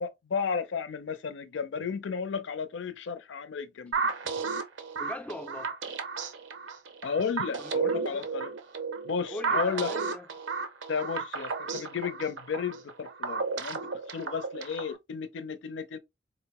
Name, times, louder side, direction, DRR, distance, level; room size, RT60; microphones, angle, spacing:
voice 1, 0.0-4.1 7.0-8.5 9.1-9.9 10.9-16.0, left 6 dB, 80° left, 0.4 m, -33 dB
sound 1, 3.9-15.0, right 5 dB, 85° right, 0.6 m, -33 dB
voice 2, 5.0-5.8 7.6-8.3 9.3-10.3, left 1 dB, 5° left, 0.3 m, -41 dB
4.0 x 2.0 x 2.8 m
head